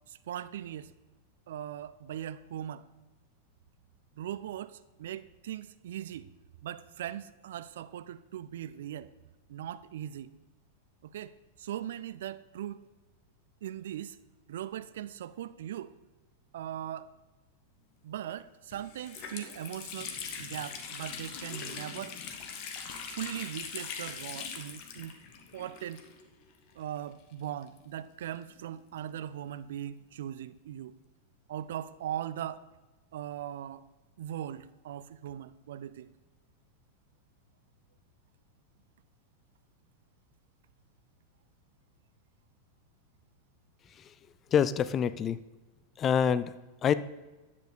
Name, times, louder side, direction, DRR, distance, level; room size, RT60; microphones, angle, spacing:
voice 1, 0.1-0.9 1.5-2.9 4.2-6.3 6.6-9.1 9.5-10.3 11.0-12.9 13.6-14.2 14.5-15.9 16.5-17.1 18.0-22.2 23.1-25.2 25.5-26.0 26.7-31.0 31.5-32.6 33.1-33.9 34.2-36.1, right 11 dB, 60° right, 15 dB, 0.4 m, -39 dB
Water tap faucet, 18.2-18.3 18.7-26.4 26.7-26.8 27.6-29.2, left 6 dB, 40° left, 1.2 m, -42 dB
voice 2, 44.5-45.4 46.0-46.5 46.8-46.9, left 8 dB, 25° left, 15 dB, 0.4 m, -26 dB
10.5 x 7.2 x 4.2 m, 1.2 s
figure-of-eight pair, 90°, 0 cm